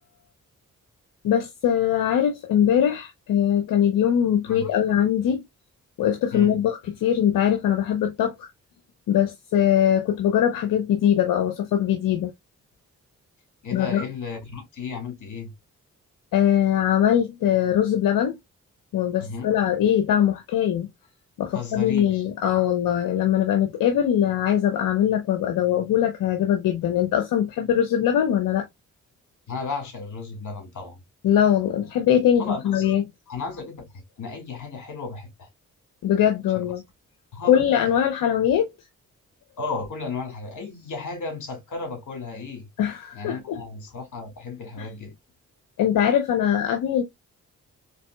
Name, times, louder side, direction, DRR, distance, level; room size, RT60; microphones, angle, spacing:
voice 1, 1.2-5.4 6.0-8.5 9.1-12.3 13.7-14.0 16.3-18.4 18.9-20.9 21.4-28.6 31.2-33.0 36.0-36.8 37.4-38.7 42.8-43.6 44.8-44.9 45.8-47.0, left 10 dB, 90° left, 0.7 m, -21 dB
voice 2, 13.6-15.5 19.2-19.6 21.5-22.7 29.5-31.0 32.4-33.0 33.3-35.5 36.5-36.7 37.3-37.6 39.6-42.7 43.1-45.1, left 4 dB, 65° left, 1.9 m, -34 dB
4.0 x 3.2 x 2.2 m
cardioid pair, 55°, 32 cm